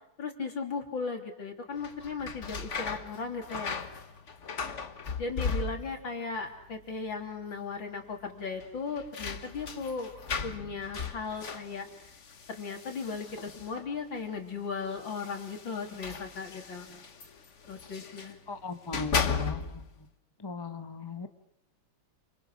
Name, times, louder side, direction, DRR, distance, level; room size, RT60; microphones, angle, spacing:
voice 1, 0.2-3.8 5.2-10.1 10.4-12.1 12.5-16.9 17.7-18.4, left 4 dB, 65° left, 3 dB, 3.9 m, -37 dB
sound 1, 1.7-6.2 6.4-7.1 7.4-7.5 8.6-14.0 14.9-18.4 18.8-19.9, left 5 dB, 40° left, 1.5 m, -37 dB
voice 2, 18.5-19.8 20.4-21.3, left 3 dB, 15° left, 8 dB, 1.0 m, -38 dB
29.0 x 27.0 x 6.4 m, 0.75 s
omnidirectional pair, 2.2 m